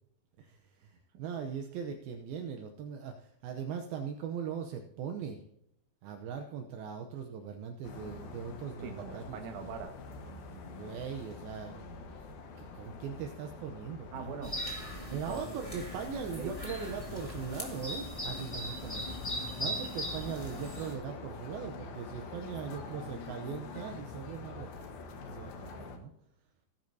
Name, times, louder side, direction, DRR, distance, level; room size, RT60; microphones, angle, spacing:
voice 1, 0.4-5.4 6.0-9.4 10.3-12.1 12.6-14.1 14.9-26.1, right 7 dB, 75° right, 4 dB, 2.6 m, -40 dB
sound 1, 7.8-26.0, left 4 dB, 70° left, 3.0 m, -46 dB
voice 2, 8.8-10.0 10.2-10.4 14.1-14.5 15.1-15.8 16.2-16.5, right 6 dB, 60° right, 4 dB, 2.7 m, -42 dB
sound 2, 14.4-20.9, equal, 15° left, 1.2 m, -39 dB
17.5 x 10.0 x 2.8 m, 0.76 s
omnidirectional pair, 4.5 m